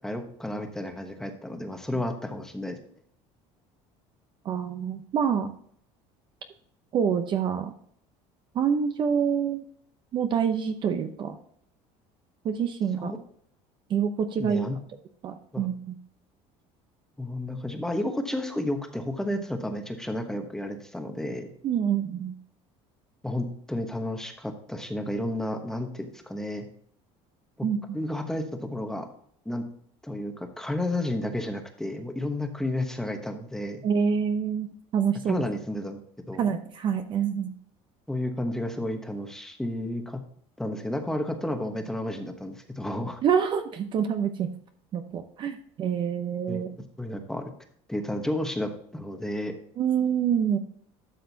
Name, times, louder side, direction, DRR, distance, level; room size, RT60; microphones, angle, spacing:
voice 1, 0.0-2.8 13.0-13.2 14.4-14.8 15.5-15.7 17.2-21.5 23.2-26.7 27.9-28.4 28.7-29.1 29.4-29.6 30.0-33.8 35.3-36.0 36.3-36.4 38.1-40.2 40.6-43.2 46.5-46.6 47.0-47.5 47.9-49.5, left 1 dB, 5° left, 5 dB, 1.1 m, -32 dB
voice 2, 4.4-5.5 6.9-7.7 8.5-9.6 10.1-11.4 12.4-13.1 13.9-14.7 15.2-15.9 21.6-22.3 27.6-28.0 33.8-34.7 34.9-35.4 36.4-37.5 43.2-44.5 44.9-46.7 49.8-50.6, right 7 dB, 35° right, 8 dB, 0.7 m, -26 dB
12.0 x 6.6 x 2.8 m, 0.63 s
cardioid pair, 155°, 13 cm